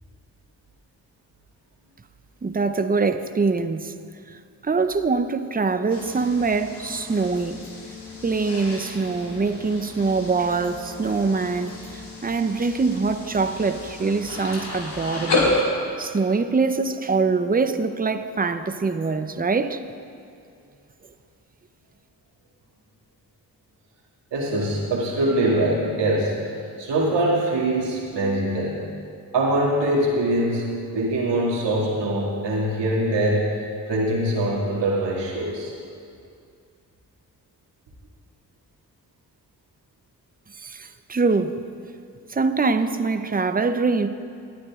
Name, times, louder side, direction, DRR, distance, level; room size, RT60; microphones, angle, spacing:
voice 1, 2.4-3.9 4.3-7.6 8.2-15.5 16.0-19.8 40.5-41.6 42.3-44.1, right 4 dB, 20° right, 0.7 m, -24 dB
sound 1, 5.9-15.6, left 2 dB, 65° left, 2.2 m, -31 dB
voice 2, 24.3-26.4 26.8-28.8 29.3-33.5 33.9-35.7, right 1 dB, 75° right, 2.3 m, -23 dB
18.5 x 9.5 x 2.5 m
supercardioid pair, 40°, 42 cm